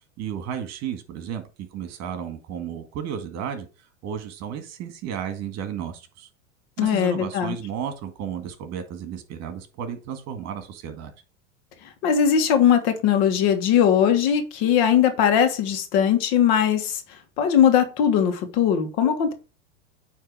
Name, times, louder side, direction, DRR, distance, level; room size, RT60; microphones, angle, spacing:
voice 1, 0.2-1.4 1.7-6.3 6.8-11.1, right 8 dB, 45° right, 1.8 m, -33 dB
voice 2, 6.8-7.5 12.0-17.0 17.4-19.3, left 8 dB, 60° left, 1.6 m, -20 dB
9.1 x 3.2 x 4.8 m
hypercardioid pair, 110°, 37 cm